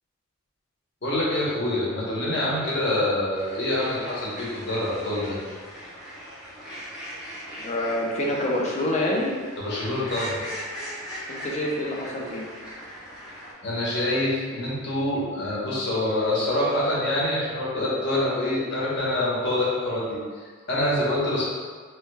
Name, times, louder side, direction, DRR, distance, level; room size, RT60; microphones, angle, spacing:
voice 1, 1.0-5.4 9.6-10.4 13.6-21.4, left 1 dB, 60° left, -7 dB, 1.0 m, -26 dB
sound 1, 3.3-13.5, equal, ahead, 0.7 m, -39 dB
voice 2, 7.5-9.3 11.3-12.5, left 1 dB, 35° left, -3 dB, 0.5 m, -27 dB
3.2 x 2.3 x 3.2 m, 1.5 s
head